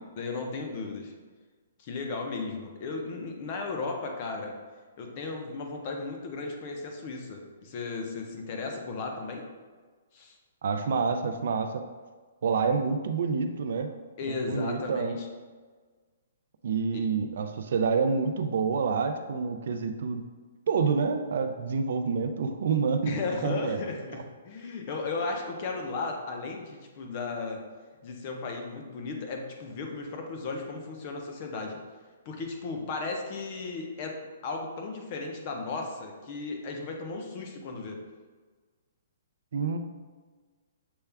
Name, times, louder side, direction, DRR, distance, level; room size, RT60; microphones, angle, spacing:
voice 1, 0.2-1.1 1.8-4.5 5.0-9.5 10.1-10.4 14.2-15.3 16.9-17.0 23.0-27.6 28.0-31.8 32.3-34.2 34.4-38.0, left 3 dB, 25° left, 2 dB, 0.5 m, -35 dB
voice 2, 10.6-11.8 12.4-13.9 14.3-15.2 16.6-20.2 20.7-23.8 39.5-39.8, right 5 dB, 50° right, 7 dB, 0.3 m, -28 dB
6.8 x 2.3 x 3.3 m, 1.4 s
hypercardioid pair, 180°, 0 cm